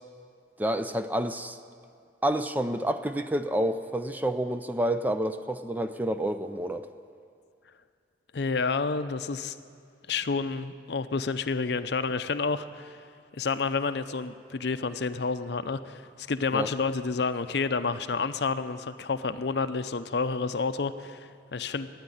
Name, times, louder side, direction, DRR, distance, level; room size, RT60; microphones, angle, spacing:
voice 1, 0.6-1.6 2.2-6.9 16.5-16.7, right 1 dB, 10° right, 9 dB, 0.4 m, -29 dB
voice 2, 8.3-9.6 10.1-13.0 13.3-21.9, left 4 dB, 65° left, 12 dB, 0.6 m, -29 dB
13.0 x 9.5 x 9.8 m, 2.3 s
head